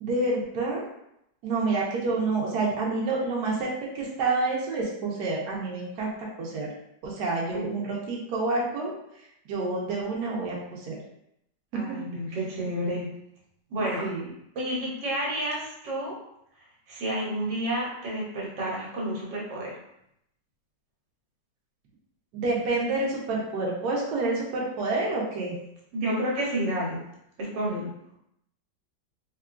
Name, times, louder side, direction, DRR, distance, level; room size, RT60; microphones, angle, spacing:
voice 1, 0.0-0.9 1.4-6.7 7.0-8.9 9.5-11.0 11.9-12.0 13.8-14.3 22.3-25.6, right 3 dB, 70° right, -3 dB, 1.2 m, -28 dB
voice 2, 7.5-7.8 11.7-13.1 13.7-14.0 14.5-16.2 16.9-19.8 25.9-27.0 27.4-27.9, right 1 dB, 90° right, -4 dB, 1.5 m, -30 dB
3.6 x 2.3 x 2.4 m, 0.78 s
omnidirectional pair, 1.9 m